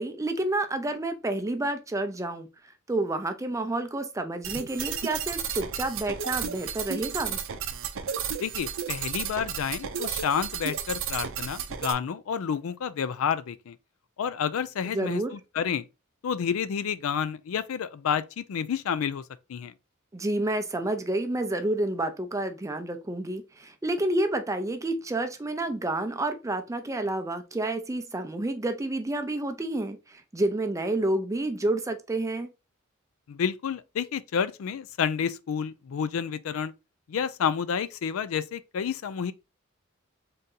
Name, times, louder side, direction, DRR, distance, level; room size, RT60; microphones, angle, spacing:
voice 1, 0.0-2.5 2.9-7.4 14.9-15.3 20.1-32.5, right 2 dB, 15° right, 0.5 m, -29 dB
sound 1, 4.4-11.9, right 7 dB, 70° right, 0.5 m, -33 dB
voice 2, 8.4-13.8 14.2-15.9 16.2-19.2 19.5-19.7 33.3-36.7 37.1-39.3, left 7 dB, 75° left, 0.4 m, -30 dB
3.7 x 2.8 x 3.7 m
head